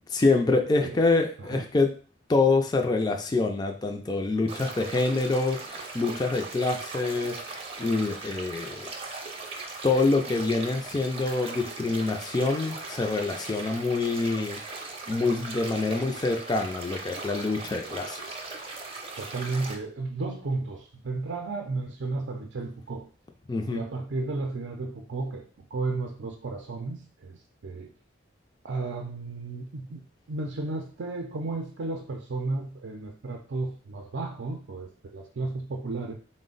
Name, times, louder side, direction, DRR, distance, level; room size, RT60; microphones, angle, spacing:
voice 1, 0.1-1.9 2.3-7.4 7.8-8.9 9.8-14.6 15.1-18.3 23.5-23.8, left 3 dB, 20° left, 0.3 m, -26 dB
sound 1, 4.5-19.7, right 3 dB, 30° right, 0.6 m, -39 dB
voice 2, 19.2-23.1 23.7-27.9 28.6-30.0 30.3-36.1, right 3 dB, 85° right, 0.5 m, -33 dB
4.1 x 2.1 x 3.8 m
head